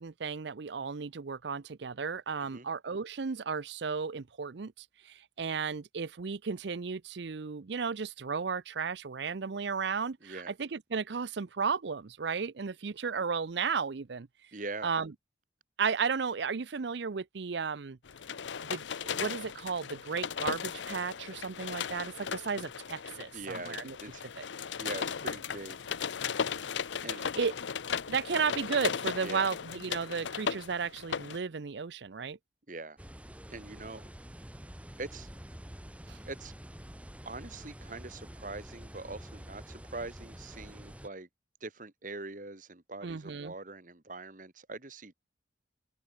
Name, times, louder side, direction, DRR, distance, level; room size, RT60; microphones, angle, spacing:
voice 1, 0.0-14.3 14.8-15.1 15.8-18.0 18.6-24.0 24.4-24.5 27.4-27.5 28.1-32.4 36.1-36.2 43.0-43.5, right 5 dB, 70° right, 0.6 m, -34 dB
voice 2, 10.2-10.5 14.5-14.9 23.3-24.2 24.8-25.9 27.0-27.3 29.2-29.6 32.7-33.0 33.5-34.1 35.0-35.3 36.3-36.5 37.3-41.3 41.6-45.1, right 3 dB, 45° right, 1.7 m, -43 dB
sound 1, 18.0-31.4, left 7 dB, 80° left, 0.7 m, -37 dB
sound 2, 33.0-41.1, equal, 5° right, 1.6 m, -47 dB
open air
head